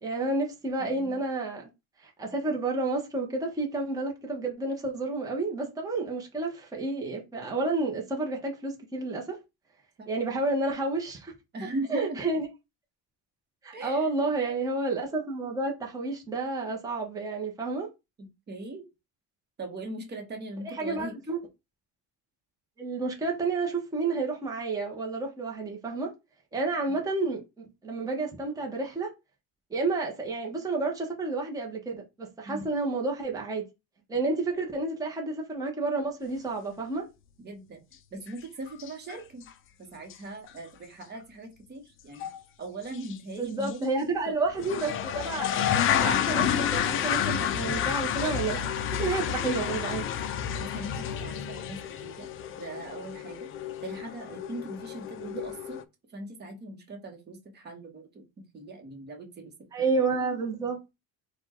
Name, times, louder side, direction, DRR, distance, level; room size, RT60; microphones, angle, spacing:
voice 1, 0.0-1.7 2.2-9.4 10.1-11.3 11.9-12.5 13.6-17.9 20.6-21.4 22.8-26.1 26.5-29.1 29.7-33.6 34.1-37.0 43.4-50.0 55.2-55.4 59.7-60.8, right 3 dB, 10° right, 0.9 m, -30 dB
voice 2, 0.8-1.2 10.0-10.1 11.5-12.2 13.7-14.1 18.2-18.9 19.6-21.1 26.9-27.0 32.4-32.7 37.4-37.8 38.1-39.5 39.8-42.3 42.6-44.4 50.4-52.3 52.6-53.5 53.8-55.8 56.1-60.0, right 2 dB, 30° right, 1.2 m, -40 dB
sound 1, 38.3-38.4 38.7-39.2 39.5-39.6 40.1-40.2 40.5-40.6 42.2-42.4 42.9-43.2 43.6-43.7 44.5-55.8, left 9 dB, 40° left, 0.4 m, -30 dB
4.2 x 2.4 x 4.3 m
cardioid pair, 150°, 34 cm